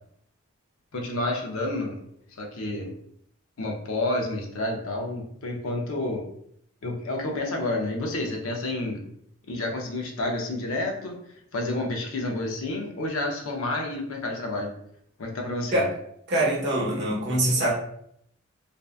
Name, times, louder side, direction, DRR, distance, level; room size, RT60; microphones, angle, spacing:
voice 1, 0.9-2.0 2.4-2.9 3.6-6.2 6.8-9.1 9.5-11.2 11.5-14.7 15.2-15.8, left 2 dB, 85° left, 1 dB, 0.6 m, -29 dB
voice 2, 16.3-17.7, right 1 dB, 55° right, -4 dB, 0.8 m, -23 dB
2.6 x 2.3 x 2.4 m, 0.70 s
head